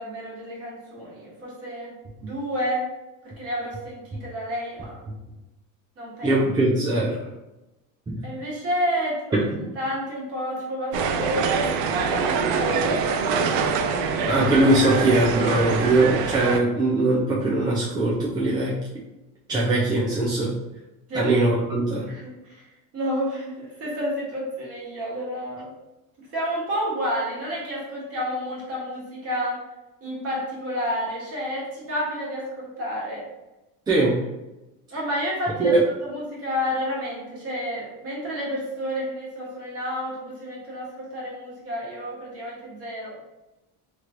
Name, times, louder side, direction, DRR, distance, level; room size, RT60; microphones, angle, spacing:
voice 1, 0.0-1.9 2.2-2.9 3.4-5.0 6.0-6.4 8.2-9.2 9.7-13.0 21.1-21.3 22.1-22.7 22.9-25.7 26.2-29.6 30.0-33.2 34.9-43.1, equal, 35° right, -5 dB, 1.3 m, -30 dB
voice 2, 6.2-7.2 8.1-8.2 14.3-18.7 19.5-20.5 21.2-22.1 33.9-34.1 35.6-35.8, right 2 dB, 10° right, -6 dB, 0.3 m, -21 dB
sound 1, 10.9-16.6, right 5 dB, 75° right, 0.5 m, -24 dB
3.0 x 3.0 x 2.5 m, 0.99 s
supercardioid pair, 125°, 42 cm